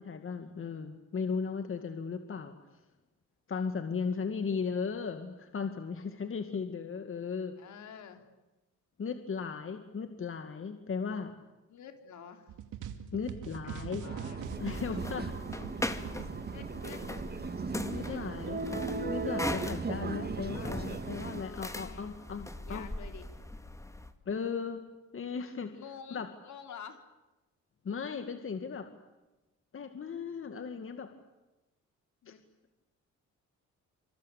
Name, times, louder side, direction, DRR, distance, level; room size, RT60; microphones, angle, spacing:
voice 1, 0.0-2.5 3.5-7.6 9.0-11.3 13.1-14.1 14.6-15.3 17.9-18.6 19.1-22.9 24.3-24.9 25.1-25.7 26.1-26.3 27.8-28.9 29.7-31.1 32.3-32.4, left 5 dB, 45° left, 7 dB, 2.2 m, -36 dB
voice 2, 7.6-8.2 11.7-12.6 13.6-14.5 15.5-17.0 18.0-18.2 21.4-22.1 22.6-23.3 25.7-27.0 32.2-32.4, left 7 dB, 70° left, 6 dB, 4.1 m, -49 dB
sound 1, 12.5-18.2, right 9 dB, 85° right, 2.5 m, -43 dB
sound 2, 14.0-21.4, right 4 dB, 30° right, 2.1 m, -38 dB
sound 3, 14.4-24.1, left 1 dB, 10° left, 2.2 m, -40 dB
27.0 x 25.5 x 8.5 m, 1.1 s
cardioid pair, 90°, 30 cm